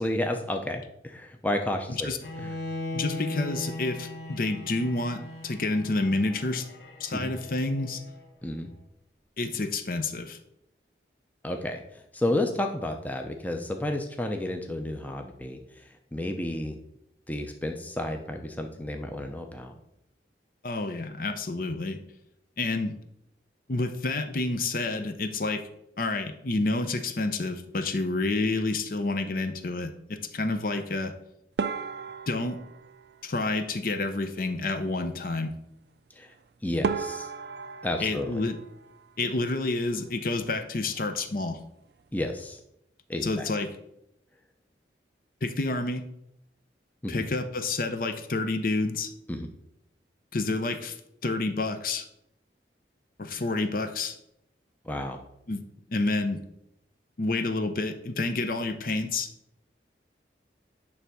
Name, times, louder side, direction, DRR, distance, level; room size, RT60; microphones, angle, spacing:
voice 1, 0.0-2.1 2.4-2.5 7.1-7.3 8.4-8.7 11.4-11.8 12.1-15.8 16.1-16.8 17.3-19.7 36.1-36.3 36.6-37.3 37.8-38.4 42.1-42.6 43.1-43.5 47.0-47.3 49.3-49.5 54.8-55.2, left 1 dB, 10° left, 4 dB, 0.6 m, -31 dB
Bowed string instrument, 2.2-8.3, left 1 dB, 65° left, 1.1 m, -38 dB
voice 2, 2.9-6.6 7.0-8.0 9.4-10.4 20.6-22.0 22.6-22.9 23.7-25.6 26.0-31.1 32.3-32.6 33.2-35.5 38.0-38.6 39.2-41.6 43.2-43.7 45.4-46.0 47.1-49.1 50.3-51.0 51.2-52.1 53.2-54.2 55.5-55.6 55.9-56.4 57.2-59.3, left 2 dB, 50° left, 8 dB, 0.6 m, -29 dB
sound 1, 31.6-34.0 36.3-36.4 36.8-39.6 39.9-40.6 40.9-41.1 41.4-41.5 42.2-42.5, right 5 dB, 65° right, 0.4 m, -36 dB
9.7 x 3.4 x 6.1 m, 0.80 s
head